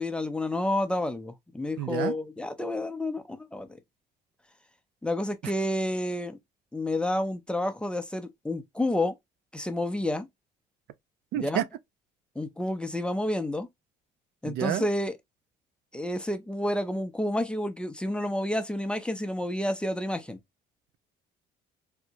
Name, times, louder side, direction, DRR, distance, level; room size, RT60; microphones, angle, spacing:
voice 1, 0.0-3.7 5.0-6.4 6.7-9.2 9.5-10.3 11.3-11.7 12.4-13.7 14.4-15.1 15.9-20.4, left 1 dB, 5° left, 0.5 m, -30 dB
voice 2, 1.8-2.2 5.4-5.5 11.3-11.6 14.5-14.9, right 12 dB, 75° right, 0.4 m, -29 dB
3.5 x 2.1 x 2.8 m
cardioid pair, 110°, 17 cm